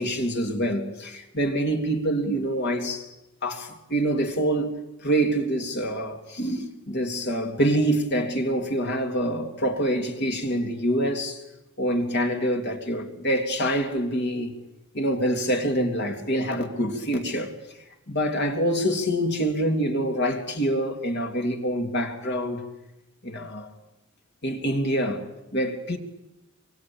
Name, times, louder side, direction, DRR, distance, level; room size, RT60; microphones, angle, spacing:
voice 1, 0.0-3.1 3.4-11.4 11.8-14.5 14.9-17.5 18.1-22.6 23.2-23.7 24.4-25.2 25.5-26.0, right 1 dB, 50° left, 3.0 m, -26 dB
26.5 x 24.5 x 8.8 m
head